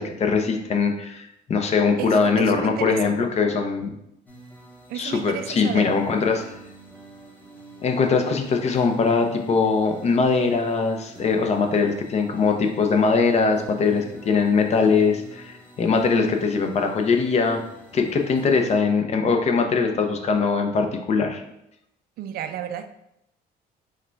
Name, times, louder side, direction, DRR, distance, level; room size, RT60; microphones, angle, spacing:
voice 1, 0.0-3.9 4.9-6.5 7.8-17.6 17.9-21.4, left 5 dB, 40° left, 4 dB, 0.6 m, -21 dB
voice 2, 2.0-3.1 4.9-5.9 22.2-22.9, right 10 dB, 65° right, 9 dB, 0.4 m, -32 dB
sound 1, 4.3-18.8, right 2 dB, 10° left, 1.0 m, -46 dB
4.8 x 2.3 x 4.4 m, 0.82 s
cardioid pair, 110°, 17 cm